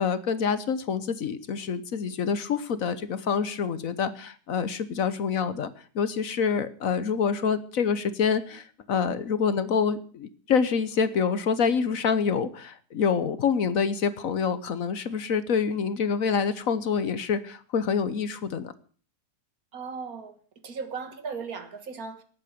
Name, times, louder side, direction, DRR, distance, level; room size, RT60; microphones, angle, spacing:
voice 1, 0.0-18.7, left 6 dB, 60° left, 1.3 m, -26 dB
voice 2, 19.7-20.4 20.6-22.2, right 5 dB, 65° right, 2.0 m, -36 dB
18.0 x 8.7 x 6.7 m
omnidirectional pair, 1.7 m